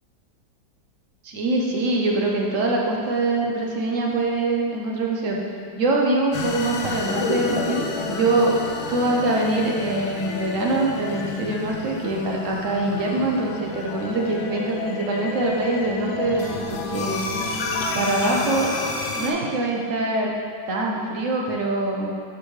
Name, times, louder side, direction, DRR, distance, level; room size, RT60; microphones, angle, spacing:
voice 1, 1.2-5.4 5.7-8.6 8.9-18.8 19.2-20.4 20.7-22.1, right 2 dB, 60° right, -1 dB, 0.9 m, -24 dB
sound 1, 6.3-19.3, left 3 dB, 75° left, 1.4 m, -30 dB
10.0 x 5.1 x 3.3 m, 2.3 s
omnidirectional pair, 2.1 m